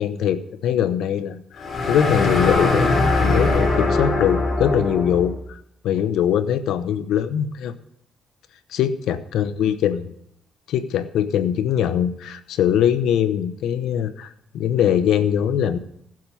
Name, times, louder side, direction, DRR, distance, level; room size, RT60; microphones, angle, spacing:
voice 1, 0.0-2.9 3.2-7.7 8.7-10.1 10.7-15.8, left 9 dB, 85° left, 12 dB, 0.9 m, -22 dB
sound 1, 1.6-5.4, left 2 dB, 40° left, 3.6 m, -21 dB
15.5 x 7.6 x 5.6 m, 0.73 s
cardioid pair, 90°, 0 cm